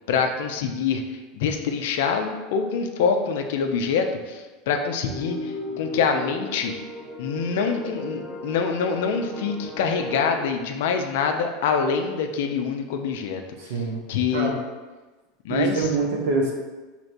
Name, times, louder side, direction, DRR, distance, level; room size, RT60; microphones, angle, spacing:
voice 1, 0.1-1.0 1.3-6.7 7.2-13.4 14.1-14.5 15.4-15.9, left 6 dB, 70° left, 5 dB, 0.4 m, -25 dB
sound 1, 5.1-10.4, left 1 dB, 40° left, 0.9 m, -35 dB
voice 2, 13.6-14.0 14.3-14.6 15.5-16.5, right 3 dB, 70° right, 0 dB, 0.7 m, -24 dB
3.2 x 2.8 x 2.6 m, 1.2 s
hypercardioid pair, 95°, 0 cm